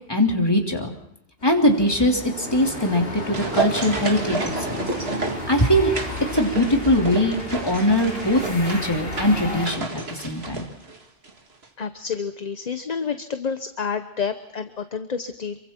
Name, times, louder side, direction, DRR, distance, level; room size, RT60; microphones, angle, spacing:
voice 1, 0.1-0.9 1.4-4.8 5.5-5.9 6.3-10.7, left 1 dB, 20° left, 1 dB, 2.9 m, -21 dB
sound 1, 1.4-9.7, left 1 dB, 65° left, 3.3 m, -33 dB
sound 2, 2.8-11.4 11.6-11.7, right 3 dB, 75° right, 2.2 m, -31 dB
voice 2, 11.8-15.6, left 6 dB, 40° left, 9 dB, 1.0 m, -29 dB
27.0 x 24.0 x 4.4 m, 0.77 s
omnidirectional pair, 1.1 m